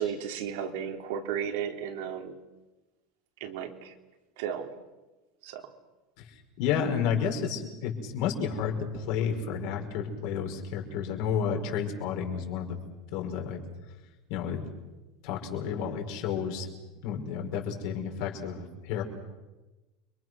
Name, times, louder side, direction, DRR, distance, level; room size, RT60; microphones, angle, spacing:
voice 1, 0.0-2.4 3.4-3.9 4.4-4.7 5.4-5.6, right 8 dB, 75° right, 4 dB, 3.2 m, -34 dB
voice 2, 6.3-12.8 13.1-13.6 14.3-14.7 15.2-16.7 17.0-19.0, left 7 dB, 65° left, 2 dB, 5.2 m, -31 dB
29.5 x 23.5 x 6.3 m, 1.1 s
supercardioid pair, 135°, 0 cm